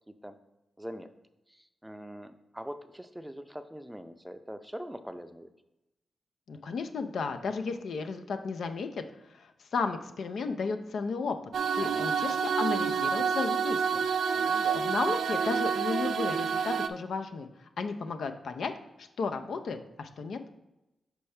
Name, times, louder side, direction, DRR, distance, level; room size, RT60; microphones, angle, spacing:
voice 1, 0.1-0.4 0.8-1.1 1.5-5.5 11.8-12.1 14.3-14.9, equal, 5° right, 9 dB, 0.5 m, -43 dB
voice 2, 6.5-9.0 9.3-11.4 11.7-14.0 14.4-14.5 14.7-18.7 19.0-20.4, left 4 dB, 75° left, 7 dB, 0.6 m, -34 dB
sound 1, 11.5-16.9, right 6 dB, 85° right, 0.3 m, -28 dB
7.0 x 4.5 x 3.3 m, 0.94 s
cardioid pair, 65°, 0 cm